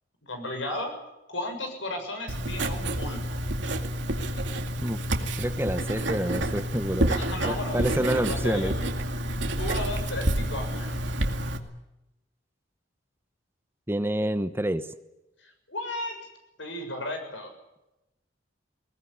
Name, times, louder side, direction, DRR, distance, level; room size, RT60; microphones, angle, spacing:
voice 1, 0.2-0.9 1.3-3.4 7.1-8.7 9.6-11.0 15.7-16.1 16.6-17.5, left 1 dB, 80° left, 5 dB, 7.0 m, -34 dB
Writing, 2.3-11.6, right 1 dB, 75° right, 2.4 m, -29 dB
voice 2, 4.8-7.1 7.4-8.7 13.9-14.9, right 1 dB, 10° right, 11 dB, 1.0 m, -28 dB
21.0 x 20.5 x 9.7 m, 0.94 s
head